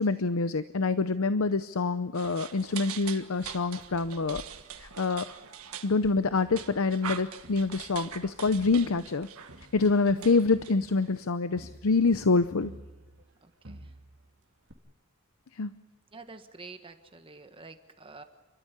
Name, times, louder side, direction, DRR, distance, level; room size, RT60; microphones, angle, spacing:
voice 1, 0.0-4.4 4.8-5.3 5.8-9.3 9.7-12.7 15.5-15.7, left 3 dB, 75° left, 12 dB, 0.7 m, -26 dB
sound 1, 2.1-11.2, right 8 dB, 90° right, 1.6 m, -43 dB
Crowd, 6.3-8.1 8.4-13.4 13.6-14.3 14.7-14.8, right 1 dB, 60° right, 2.6 m, -52 dB
voice 2, 13.4-13.9 16.1-18.2, right 3 dB, 25° right, 7 dB, 1.5 m, -48 dB
29.5 x 13.0 x 9.8 m, 1.2 s
head